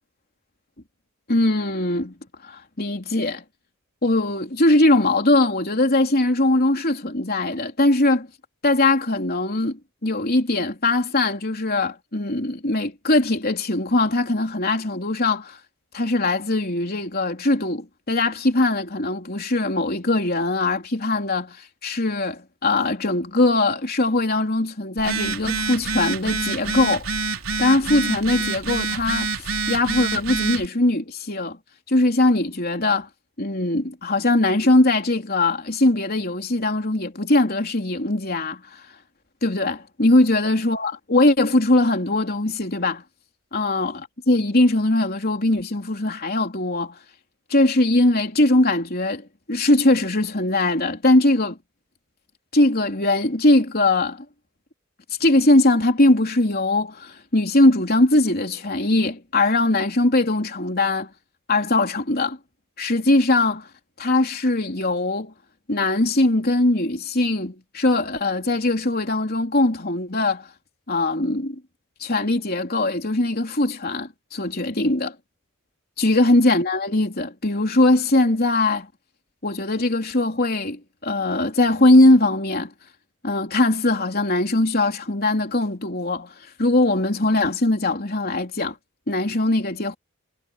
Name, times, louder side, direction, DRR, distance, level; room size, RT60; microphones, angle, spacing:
voice 1, 1.3-2.1 2.4-3.4 4.0-8.3 8.6-15.6 15.9-21.6 21.8-27.1 27.6-29.3 29.7-31.6 31.9-33.1 33.4-38.8 39.4-43.0 43.5-47.0 47.5-51.6 52.5-54.3 55.2-61.1 61.5-62.4 62.8-63.7 64.0-65.3 65.7-70.5 70.9-71.6 72.0-75.1 76.0-78.9 79.4-82.7 83.2-86.3 86.6-88.8 89.1-90.0, left 2 dB, 45° left, 3.5 m, -21 dB
Telephone, 25.0-30.7, right 4 dB, 65° right, 4.1 m, -27 dB
head